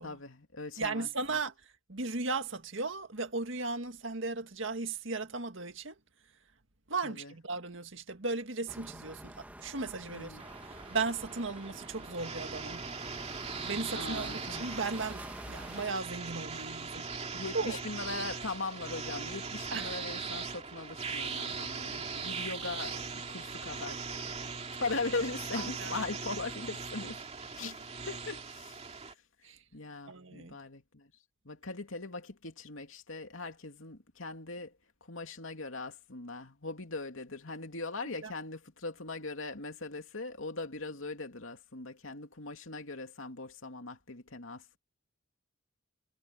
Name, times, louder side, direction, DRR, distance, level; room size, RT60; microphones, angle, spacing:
voice 1, 0.0-1.4 7.0-7.3 10.1-10.4 13.9-14.7 17.3-24.2 24.7-27.2 27.5-28.7 29.1-29.2 29.7-31.1 31.4-34.7 35.1-44.8, left 3 dB, 75° left, 2.8 m, -40 dB
voice 2, 0.8-1.5 1.9-5.9 6.9-10.4 10.9-12.9 13.6-17.1 17.5-17.8 19.7-19.9 22.0-22.3 25.5-25.9 27.6-27.7 29.4-29.6 30.1-30.6 38.0-38.3, right 3 dB, 65° right, 2.0 m, -36 dB
sound 1, 8.7-15.9, right 1 dB, 10° right, 1.3 m, -48 dB
sound 2, 10.4-29.1, right 5 dB, 35° right, 2.5 m, -40 dB
head